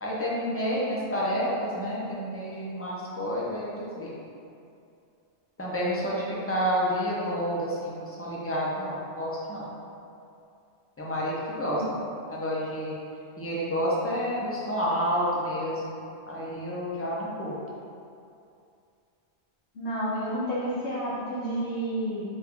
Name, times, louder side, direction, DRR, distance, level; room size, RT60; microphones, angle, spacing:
voice 1, 0.0-4.1 5.6-9.6 11.0-11.8 12.3-13.0 13.4-15.9 16.3-17.6, equal, 20° left, -6 dB, 0.4 m, -29 dB
voice 2, 19.7-22.2, right 1 dB, 80° left, -7 dB, 1.2 m, -30 dB
3.8 x 2.3 x 3.6 m, 2.5 s
omnidirectional pair, 1.1 m